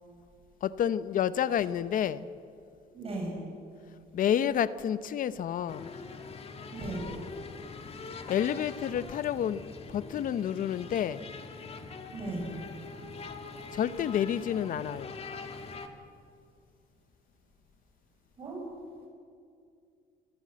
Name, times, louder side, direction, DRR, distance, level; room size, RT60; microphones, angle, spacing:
voice 1, 0.6-2.3 4.1-5.9 8.3-9.6 9.9-11.2 13.7-15.2, left 9 dB, 55° left, 0.7 m, -29 dB
voice 2, 2.9-3.4 6.7-7.1 12.1-12.5 18.4-18.6, right 2 dB, 35° right, 6.3 m, -36 dB
sound 1, 5.7-15.9, left 4 dB, 35° left, 1.7 m, -43 dB
27.0 x 13.5 x 7.6 m
cardioid pair, 110°, 17 cm